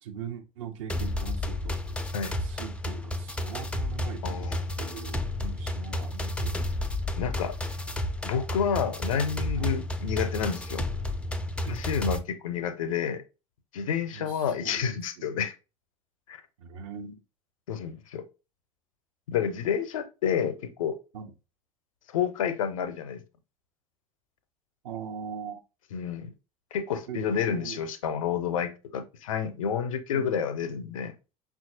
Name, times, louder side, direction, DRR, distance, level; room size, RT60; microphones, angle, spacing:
voice 1, 0.0-6.6 9.6-9.8 11.6-11.8 14.1-15.4 16.6-17.2 21.1-21.3 24.8-25.6 27.1-27.8 30.1-30.3, right 7 dB, 60° right, 0.7 m, -41 dB
sound 1, 0.9-12.2, left 1 dB, 5° left, 0.4 m, -32 dB
voice 2, 4.2-4.5 7.2-7.6 8.2-10.8 11.7-13.2 13.7-15.5 16.3-16.4 17.7-18.3 19.3-21.0 22.1-23.2 25.9-26.3 26.7-31.2, left 7 dB, 70° left, 0.6 m, -29 dB
5.7 x 2.4 x 2.7 m
figure-of-eight pair, 70°, 18 cm